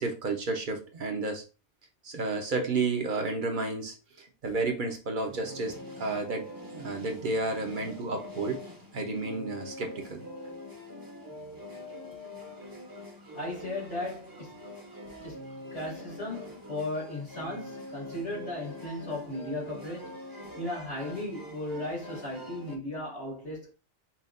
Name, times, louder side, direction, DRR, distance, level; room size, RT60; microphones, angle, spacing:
voice 1, 0.0-1.4 2.0-6.5 6.7-8.6 8.9-10.2, right 3 dB, 50° right, 1.0 m, -31 dB
sound 1, 5.3-22.8, left 1 dB, 20° right, 0.8 m, -44 dB
voice 2, 13.3-14.6 15.2-20.2 20.5-23.7, left 1 dB, 85° left, 2.8 m, -36 dB
5.6 x 2.5 x 2.5 m
omnidirectional pair, 1.1 m